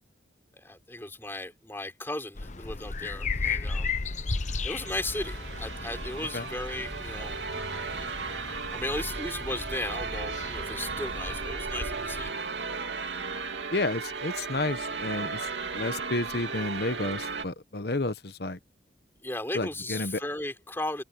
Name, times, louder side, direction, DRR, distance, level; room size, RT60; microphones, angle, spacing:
voice 1, 0.5-3.9 4.6-7.4 8.7-12.5 19.2-21.0, left 1 dB, 15° left, 3.9 m, -36 dB
sound 1, 2.3-12.3, left 4 dB, 40° left, 0.9 m, -35 dB
sound 2, 4.3-17.5, right 4 dB, 85° right, 2.5 m, -36 dB
voice 2, 13.7-18.6 19.5-20.2, left 2 dB, 60° left, 1.1 m, -31 dB
open air
head